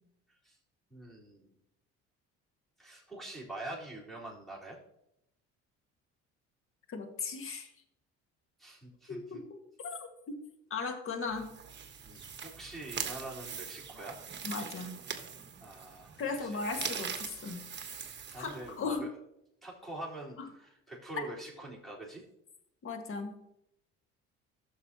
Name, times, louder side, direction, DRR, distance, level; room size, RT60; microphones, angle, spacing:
voice 1, 0.9-1.5 2.8-4.8 8.6-9.4 12.0-14.2 15.6-16.6 18.3-19.1 19.6-22.2, right 2 dB, ahead, -7 dB, 3.9 m, -45 dB
voice 2, 6.9-7.7 9.1-9.6 9.8-10.4 10.7-11.5 14.4-15.0 16.2-17.7 18.4-18.5 18.8-19.1 22.8-23.4, left 4 dB, 45° left, 5 dB, 1.7 m, -37 dB
sound 1, 11.3-19.0, right 7 dB, 35° right, 1.2 m, -42 dB
14.0 x 6.7 x 2.9 m, 0.80 s
supercardioid pair, 85°, 30 cm